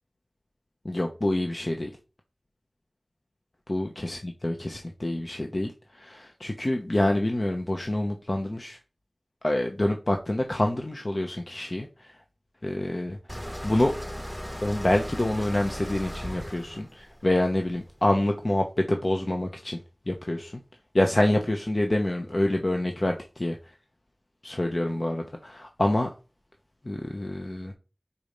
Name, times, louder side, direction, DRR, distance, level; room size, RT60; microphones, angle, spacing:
voice 1, 0.8-1.9 3.7-8.8 9.4-12.1 12.6-13.9 14.6-19.8 20.1-20.6 20.9-23.6 24.4-26.1 26.8-27.7, left 1 dB, 55° left, 0.9 m, -27 dB
sound 1, 13.3-18.2, equal, 5° left, 1.1 m, -37 dB
5.0 x 4.3 x 5.2 m
wide cardioid pair, 40°, 0 cm